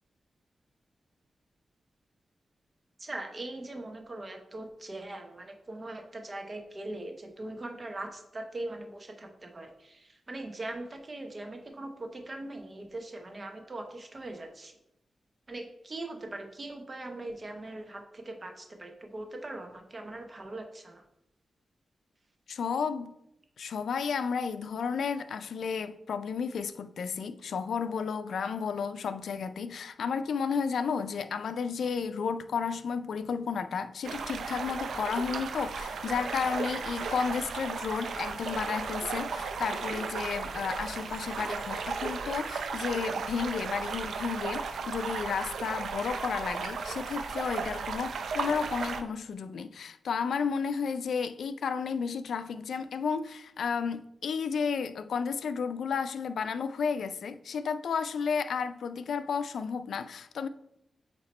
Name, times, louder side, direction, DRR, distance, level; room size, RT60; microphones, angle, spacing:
voice 1, 3.0-14.8 15.5-21.0, right 2 dB, 35° right, 0.9 m, -41 dB
voice 2, 22.5-23.1 23.6-60.5, left 6 dB, 80° left, 0.3 m, -32 dB
sound 1, 34.0-49.0, right 5 dB, 85° right, 0.5 m, -35 dB
8.4 x 2.9 x 4.2 m
wide cardioid pair, 95°, 0 cm